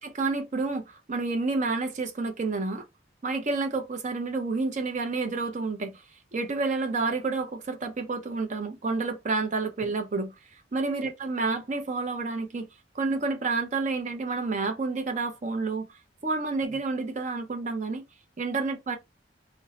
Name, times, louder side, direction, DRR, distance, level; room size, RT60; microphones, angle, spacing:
voice 1, 0.0-2.8 3.2-6.0 6.3-12.7 12.9-15.9 16.2-18.0 18.4-19.0, right 3 dB, 40° right, 0.5 m, -29 dB
2.5 x 2.0 x 3.8 m
head